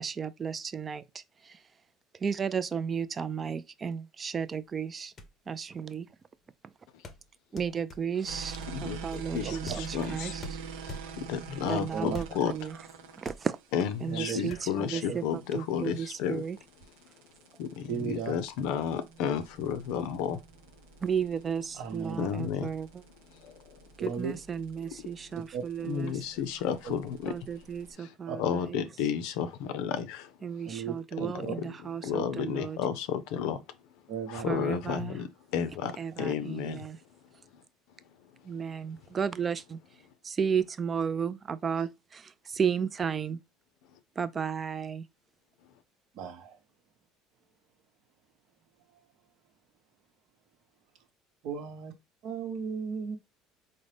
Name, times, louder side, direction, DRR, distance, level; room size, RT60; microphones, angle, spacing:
voice 1, 0.0-1.6 2.1-5.1 5.5-6.1 7.5-10.6 11.6-12.8 13.2-13.6 14.0-16.6 21.0-23.0 24.0-26.1 27.2-28.8 30.4-32.8 34.5-35.2 36.0-37.0 38.4-39.8 40.2-42.2 42.6-43.4 44.2-45.1, right 7 dB, 25° right, 0.3 m, -33 dB
sound 1, 4.9-5.0 5.2-5.5 7.0-11.4 12.1-12.6 12.9-13.0 13.3-13.8 14.5-14.6, left 1 dB, 30° left, 0.6 m, -44 dB
sound 2, 8.3-27.9, right 5 dB, 85° right, 0.5 m, -46 dB
voice 2, 8.7-10.4 10.8-12.5 13.7-16.4 17.6-20.4 22.2-22.7 23.4-23.6 25.8-27.3 28.0-30.3 31.2-31.5 32.0-33.6 34.3-36.9, left 8 dB, 75° left, 0.5 m, -32 dB
voice 3, 14.1-14.5 15.1-15.2 17.9-18.4 21.8-22.2 24.0-24.4 25.5-25.6 26.8-26.9 28.3-28.4 30.6-31.6 34.1-34.5 46.1-46.6 51.4-51.9 52.2-53.2, right 6 dB, 65° right, 0.9 m, -35 dB
3.8 x 2.1 x 3.2 m
supercardioid pair, 120°, 0 cm